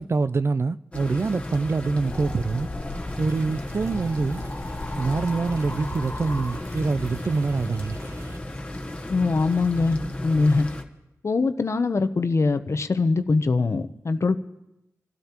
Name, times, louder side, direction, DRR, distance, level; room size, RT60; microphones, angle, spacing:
voice 1, 0.0-2.7 3.2-4.4 4.9-8.0, right 4 dB, 45° right, 0.4 m, -25 dB
sound 1, 0.9-10.8, left 1 dB, 20° left, 1.2 m, -35 dB
sound 2, 1.8-7.2, left 2 dB, 35° left, 1.6 m, -36 dB
sound 3, 3.1-8.4, right 1 dB, 70° right, 2.2 m, -44 dB
voice 2, 9.1-10.7 11.2-14.4, left 3 dB, 50° left, 0.7 m, -22 dB
28.5 x 12.5 x 2.9 m
wide cardioid pair, 70°, 6 cm